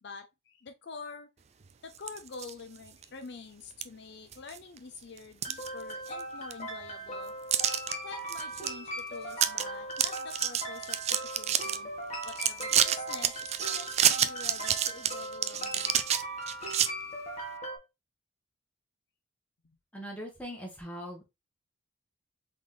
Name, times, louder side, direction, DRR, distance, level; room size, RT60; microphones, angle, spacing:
voice 1, 0.0-1.3 1.8-7.3 8.0-11.9 12.2-16.0, left 4 dB, 60° left, 0.6 m, -46 dB
sound 1, 1.9-2.5 3.0-3.1 3.8-3.9 4.3-4.8 5.2-6.2 6.5-6.6 7.5-7.9 8.3-8.7 9.0-9.1 9.3-9.6 9.9-11.8 12.2-16.9, right 10 dB, 35° right, 0.3 m, -28 dB
sound 2, 5.5-17.8, right 1 dB, 35° left, 1.6 m, -39 dB
voice 2, 19.9-21.2, equal, 5° left, 1.4 m, -40 dB
4.0 x 3.8 x 3.2 m
head